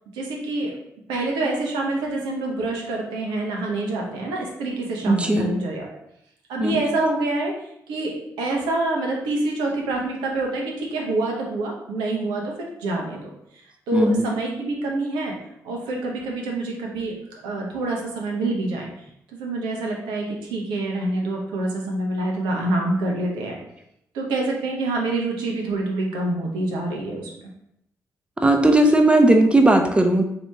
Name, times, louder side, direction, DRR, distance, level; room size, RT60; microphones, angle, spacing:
voice 1, 0.1-0.7 1.1-5.9 6.5-7.5 7.9-13.2 13.9-15.4 15.6-18.9 19.3-23.6 24.1-27.3, right 2 dB, 80° right, 0 dB, 0.8 m, -26 dB
voice 2, 5.1-5.5 6.6-6.8 13.9-14.3 28.4-30.2, right 1 dB, 15° right, 5 dB, 0.6 m, -17 dB
4.3 x 2.9 x 3.4 m, 0.76 s
hypercardioid pair, 40°, 8 cm